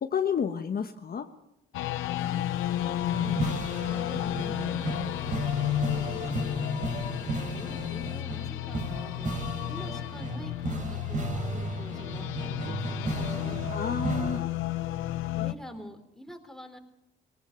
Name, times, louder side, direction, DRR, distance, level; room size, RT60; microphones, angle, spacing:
voice 1, 0.0-1.3 13.7-14.5, left 7 dB, 50° left, 6 dB, 1.3 m, -30 dB
sound 1, 1.7-15.5, left 13 dB, 90° left, 0.9 m, -32 dB
sound 2, 2.2-8.2, left 1 dB, 20° left, 2.8 m, -50 dB
voice 2, 2.2-3.4 3.9-5.3 5.6-6.6 7.0-9.3 9.6-13.7 15.4-16.8, equal, ahead, 5 dB, 3.6 m, -47 dB
sound 3, 3.1-14.4, right 2 dB, 40° right, 5.5 m, -35 dB
19.0 x 18.5 x 7.8 m, 0.84 s
cardioid pair, 90°, 20 cm